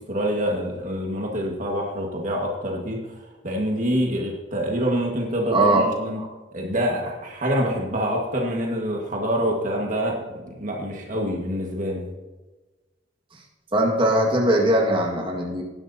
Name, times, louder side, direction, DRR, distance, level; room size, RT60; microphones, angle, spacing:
voice 1, 0.1-6.2 6.5-12.1, equal, 45° right, 0 dB, 1.7 m, -26 dB
voice 2, 5.5-5.9 6.2-6.3 13.7-15.6, right 1 dB, 30° right, -1 dB, 1.8 m, -20 dB
18.5 x 11.0 x 2.8 m, 1.2 s
head